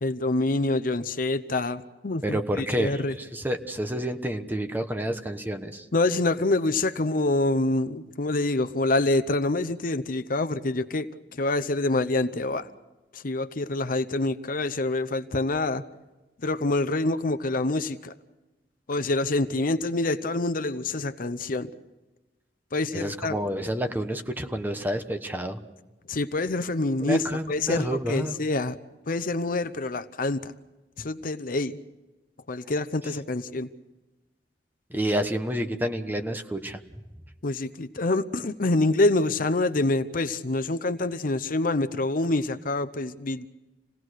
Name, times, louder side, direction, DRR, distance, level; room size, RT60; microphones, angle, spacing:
voice 1, 0.0-3.2 5.9-12.7 13.1-15.8 16.4-18.1 18.9-21.7 22.7-23.4 26.1-28.8 29.1-30.5 31.0-31.8 32.5-33.7 37.4-43.5, left 2 dB, 55° left, 12 dB, 0.8 m, -26 dB
voice 2, 2.2-3.0 3.3-5.8 22.9-25.6 27.0-28.4 34.9-36.8, equal, 10° right, 7 dB, 1.2 m, -29 dB
27.5 x 18.0 x 6.4 m, 1.1 s
head